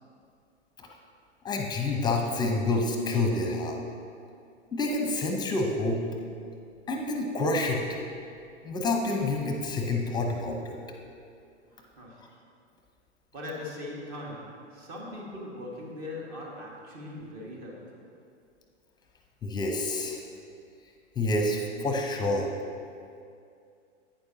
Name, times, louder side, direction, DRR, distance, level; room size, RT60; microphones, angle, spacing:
voice 1, 1.4-3.8 4.7-6.0 6.9-8.0 8.6-10.8 19.4-20.2 21.2-22.5, left 2 dB, 10° left, 2 dB, 0.8 m, -28 dB
voice 2, 12.0-12.3 13.3-17.9, left 1 dB, 40° right, -2 dB, 1.9 m, -40 dB
11.0 x 9.1 x 2.8 m, 2.4 s
figure-of-eight pair, 105°, 36 cm